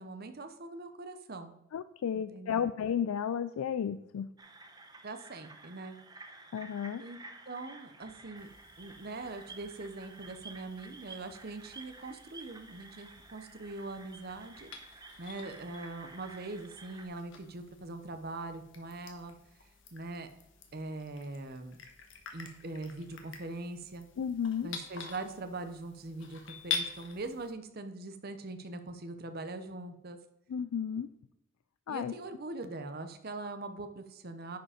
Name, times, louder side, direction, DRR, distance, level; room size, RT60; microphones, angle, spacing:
voice 1, 0.0-1.5 2.1-2.7 5.0-6.0 7.0-7.2 7.5-8.5 8.8-19.3 19.9-20.3 20.7-21.8 22.3-24.1 24.6-30.2 31.9-34.6, right 2 dB, 45° right, 8 dB, 0.8 m, -42 dB
voice 2, 1.7-4.3 6.5-7.0 24.2-24.7 30.5-31.1 31.9-32.1, left 8 dB, 90° left, 12 dB, 0.4 m, -33 dB
sound 1, 4.4-17.1, right 3 dB, 20° right, 0.8 m, -52 dB
sound 2, 8.3-27.5, left 6 dB, 60° left, 1.3 m, -46 dB
10.5 x 5.0 x 5.0 m, 0.88 s
head